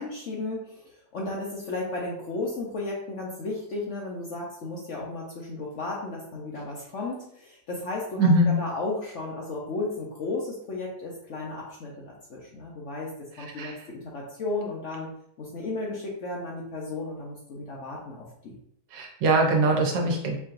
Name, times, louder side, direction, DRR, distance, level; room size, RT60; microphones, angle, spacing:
voice 1, 0.0-13.1 13.4-15.1 15.4-18.6, left 2 dB, 60° left, -3 dB, 0.8 m, -34 dB
voice 2, 8.2-8.5 13.6-13.8 18.9-20.4, right 2 dB, 85° right, 0 dB, 1.5 m, -22 dB
4.5 x 2.8 x 2.5 m, 0.69 s
omnidirectional pair, 1.9 m